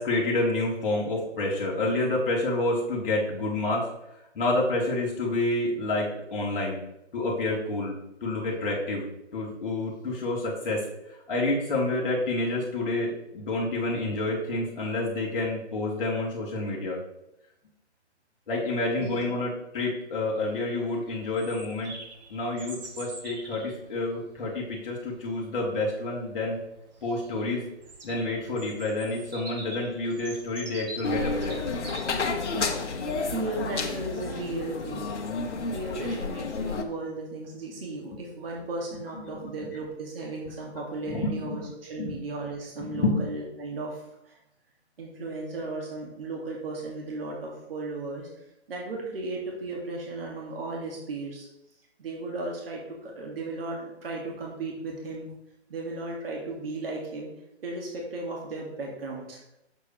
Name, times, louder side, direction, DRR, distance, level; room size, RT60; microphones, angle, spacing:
voice 1, 0.0-3.9 4.3-6.8 7.1-7.9 8.2-9.0 9.3-10.8 11.1-17.0 18.5-21.9 22.3-26.6 27.0-27.6 28.0-31.6 35.5-35.6 39.4-39.5 41.1-41.6 42.0-42.2 42.8-43.1, left 2 dB, ahead, -23 dB, 0.4 m, -28 dB
Bird vocalization bird call bird song, 20.4-33.1, right 2 dB, 40° right, 1.6 m, -45 dB
sound 1, 31.0-36.8, left 3 dB, 85° left, 1.2 m, -31 dB
voice 2, 33.3-35.1 35.7-41.6 41.9-44.4 45.0-48.3 48.7-51.5 52.0-55.3 55.7-57.3 57.6-59.4, right 2 dB, 55° right, -2 dB, 2.0 m, -35 dB
7.9 x 6.6 x 3.1 m, 0.85 s
hypercardioid pair, 160°, 34 cm